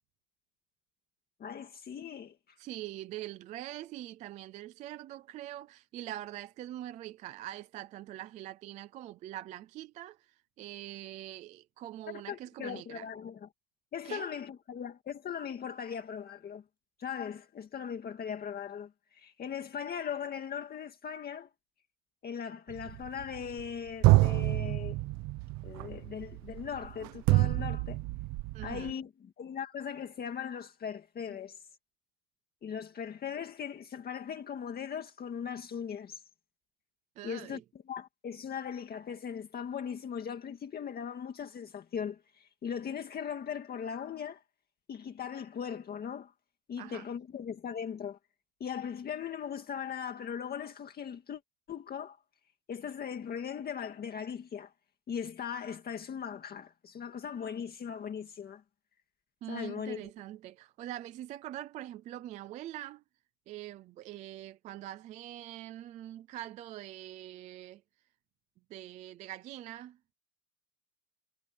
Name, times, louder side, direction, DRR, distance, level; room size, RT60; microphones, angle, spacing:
voice 1, 1.4-2.6 12.1-13.5 13.9-16.6 17.0-21.5 22.2-25.0 25.6-28.0 28.6-31.6 32.6-36.2 37.2-44.4 44.9-46.3 46.7-48.2 48.6-51.4 51.7-52.2 52.7-54.7 55.1-58.6 59.5-60.1, left 7 dB, 20° left, 1.9 m, -39 dB
voice 2, 2.6-10.2 10.6-13.1 14.0-14.3 28.5-28.9 37.2-37.6 46.8-47.0 59.4-63.0 63.5-67.8 68.7-70.1, right 13 dB, 20° right, 0.3 m, -43 dB
sound 1, 22.7-23.7 24.0-28.9, right 20 dB, 40° right, 1.0 m, -28 dB
supercardioid pair, 155°, 44 cm